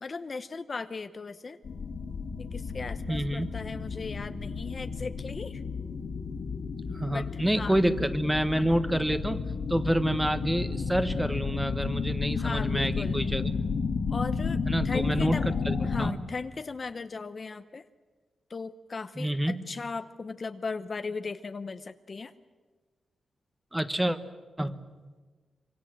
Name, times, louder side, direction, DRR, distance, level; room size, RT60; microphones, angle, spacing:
voice 1, 0.0-1.6 2.4-5.6 7.1-7.7 12.3-13.2 14.1-14.6 14.8-15.5 15.8-17.8 18.5-22.3, left 4 dB, 40° left, 10 dB, 0.8 m, -37 dB
sound 1, 1.6-16.1, left 4 dB, 75° left, 2.9 m, -32 dB
voice 2, 3.1-3.6 6.9-9.4 9.7-13.5 14.7-16.2 19.1-19.6 23.7-24.2 24.6-24.8, right 1 dB, 5° right, 10 dB, 1.3 m, -28 dB
25.5 x 23.5 x 7.7 m, 1.4 s
cardioid pair, 95°, 0 cm